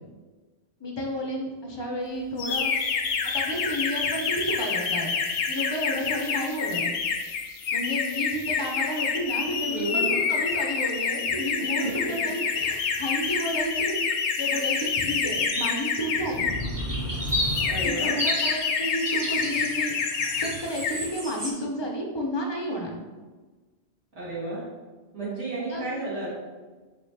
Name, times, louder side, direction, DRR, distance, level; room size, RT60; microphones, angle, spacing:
voice 1, 0.8-2.7 3.2-5.1 5.5-6.8 7.7-14.0 14.4-16.5 17.8-19.9 20.4-22.9 25.7-25.9, equal, 40° left, 0 dB, 0.4 m, -31 dB
sound 1, 2.4-16.7 17.3-20.5 20.7-21.1, left 6 dB, 80° left, 0.9 m, -28 dB
voice 2, 9.7-10.2 11.6-12.1 17.7-18.1 24.2-24.6 25.1-26.3, right 2 dB, 75° right, -8 dB, 1.9 m, -32 dB
sound 2, 15.1-15.7 16.1-21.5, equal, 25° right, 0.7 m, -32 dB
3.8 x 3.0 x 3.2 m, 1.3 s
omnidirectional pair, 1.1 m